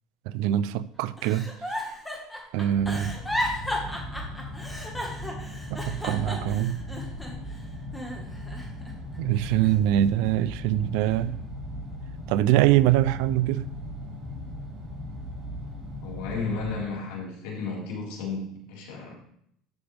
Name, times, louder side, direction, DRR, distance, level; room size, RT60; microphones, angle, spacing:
voice 1, 0.3-1.5 2.5-3.2 5.7-6.8 9.2-11.4 12.3-13.7, right 12 dB, 70° right, 0.5 m, -23 dB
Giggle, 1.2-7.5 7.9-8.9 9.4-10.5 11.0-11.3, left 1 dB, 5° left, 1.7 m, -34 dB
sound 1, 2.7-16.8, left 1 dB, 35° right, 3.7 m, -38 dB
voice 2, 16.0-19.1, left 4 dB, 80° left, 4.5 m, -33 dB
13.0 x 6.7 x 3.5 m
cardioid pair, 150°, 0 cm